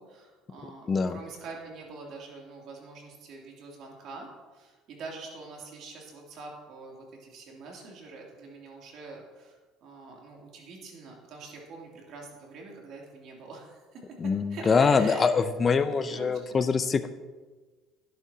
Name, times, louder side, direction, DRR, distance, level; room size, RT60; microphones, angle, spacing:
voice 1, 0.0-4.3 4.5-14.0 14.5-15.3 15.6-16.7, right 3 dB, 60° right, -1 dB, 2.9 m, -45 dB
voice 2, 0.9-1.2 14.2-17.2, left 5 dB, 35° left, 12 dB, 0.7 m, -24 dB
11.0 x 11.0 x 2.9 m, 1.3 s
hypercardioid pair, 80°, 0 cm